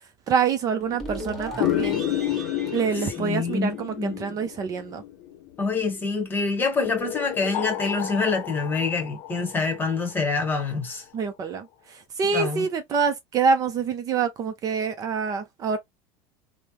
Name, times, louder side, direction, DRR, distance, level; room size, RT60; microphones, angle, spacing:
voice 1, 0.3-2.0 2.7-5.0 11.1-15.8, right 5 dB, 35° right, 0.6 m, -26 dB
sound 1, 0.8-4.1, right 1 dB, 5° left, 1.5 m, -37 dB
sound 2, 1.6-5.8 6.8-10.6, left 12 dB, 65° left, 0.6 m, -31 dB
voice 2, 3.2-4.2 5.6-11.0 12.3-12.7, left 4 dB, 20° left, 1.2 m, -26 dB
3.2 x 2.2 x 2.9 m
supercardioid pair, 120°, 10 cm